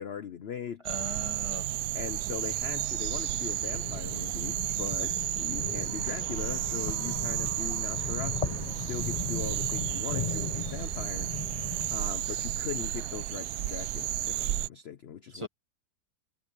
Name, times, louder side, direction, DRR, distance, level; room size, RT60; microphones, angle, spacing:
voice 1, 0.0-0.8 1.9-11.3 11.9-15.5, left 8 dB, 55° left, 0.7 m, -39 dB
voice 2, 0.8-1.7 15.3-15.5, equal, 20° right, 1.2 m, -39 dB
sound 1, 0.9-14.7, right 13 dB, 75° right, 1.1 m, -32 dB
sound 2, 3.5-12.7, left 4 dB, 25° left, 1.2 m, -38 dB
sound 3, 5.8-11.0, right 1 dB, 50° right, 7.7 m, -53 dB
omnidirectional pair, 1.7 m